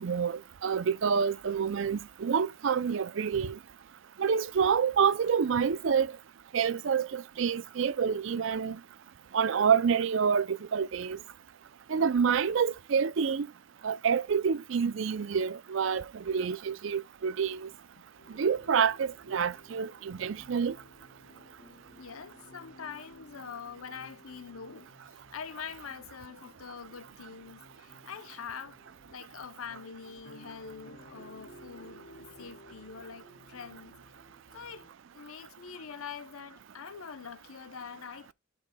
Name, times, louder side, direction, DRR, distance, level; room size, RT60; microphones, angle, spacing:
voice 1, 0.0-3.6 4.2-6.1 6.5-8.8 9.3-11.2 11.9-13.5 13.8-17.7 18.3-20.8, right 6 dB, 65° right, 0.4 m, -28 dB
sound 1, 18.2-34.9, left 1 dB, 50° left, 3.0 m, -56 dB
voice 2, 22.0-28.8 29.1-34.0 34.5-38.3, left 6 dB, 85° left, 0.7 m, -44 dB
11.5 x 5.4 x 2.2 m
head